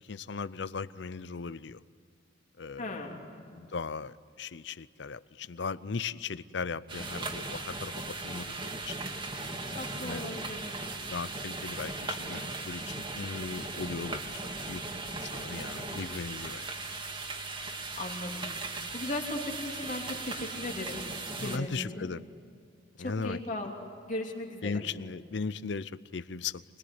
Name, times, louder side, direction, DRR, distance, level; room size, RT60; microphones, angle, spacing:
voice 1, 0.0-1.8 2.6-3.1 3.5-8.9 9.7-10.2 11.1-14.8 15.1-16.7 21.4-22.2 23.0-23.4 24.6-26.6, left 4 dB, 60° left, 17 dB, 0.6 m, -38 dB
voice 2, 2.8-3.6 9.7-10.6 18.0-22.1 23.0-23.7 24.1-24.8, left 1 dB, 40° left, 1 dB, 3.1 m, -37 dB
sound 1, 6.9-21.6, right 3 dB, 25° right, 1.9 m, -38 dB
25.5 x 21.0 x 9.6 m, 2.2 s
head